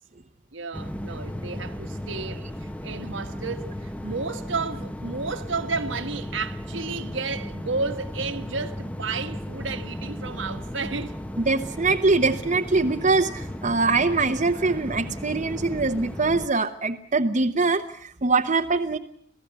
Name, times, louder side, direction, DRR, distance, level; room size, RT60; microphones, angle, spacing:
voice 1, 0.5-11.2, right 4 dB, 70° right, 1.5 m, -32 dB
sound 1, 0.7-16.5, equal, 5° left, 1.0 m, -35 dB
voice 2, 11.5-19.0, right 3 dB, 40° right, 0.9 m, -23 dB
27.0 x 17.0 x 8.2 m
head